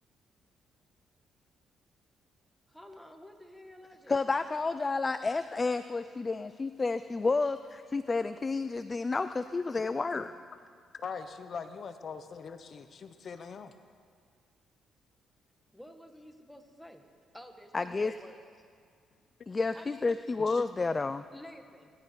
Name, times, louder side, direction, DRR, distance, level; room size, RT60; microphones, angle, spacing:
voice 1, 2.7-4.5 15.7-17.0 17.3-18.4 19.7-20.1 21.3-21.9, equal, ahead, 4 dB, 1.8 m, -51 dB
voice 2, 4.1-10.3 17.7-18.2 19.5-21.2, left 3 dB, 25° left, 12 dB, 0.4 m, -30 dB
voice 3, 10.9-13.7 20.4-20.6 20.9-21.1, left 6 dB, 50° left, 9 dB, 0.8 m, -42 dB
25.5 x 11.5 x 4.7 m, 2.1 s
cardioid pair, 90°, 0 cm